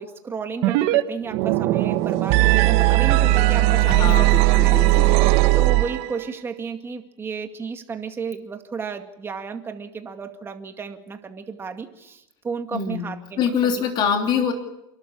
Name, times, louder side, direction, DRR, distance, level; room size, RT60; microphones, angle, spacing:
voice 1, 0.0-4.9 5.5-13.9, right 5 dB, 20° right, 5 dB, 2.1 m, -33 dB
sound 1, 0.6-1.0 1.3-6.2, right 18 dB, 60° right, 1.2 m, -18 dB
voice 2, 3.9-5.2 12.7-13.1 13.4-14.5, left 6 dB, 40° left, 3 dB, 3.3 m, -24 dB
28.5 x 12.0 x 8.6 m, 0.90 s
supercardioid pair, 135°, 12 cm